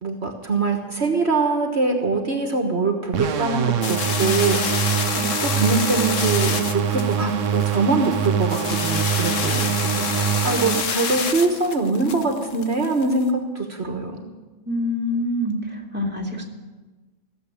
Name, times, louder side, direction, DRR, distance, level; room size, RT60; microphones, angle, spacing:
voice 1, 0.0-4.8 5.2-14.3, right 3 dB, 60° right, 3 dB, 1.7 m, -23 dB
sound 1, 3.1-10.8, right 8 dB, 80° right, 1.2 m, -24 dB
sound 2, 3.8-13.2, left 6 dB, 85° left, 1.4 m, -28 dB
voice 2, 14.7-16.4, left 1 dB, 10° right, -2 dB, 2.5 m, -26 dB
17.0 x 8.0 x 10.0 m, 1.3 s
omnidirectional pair, 1.3 m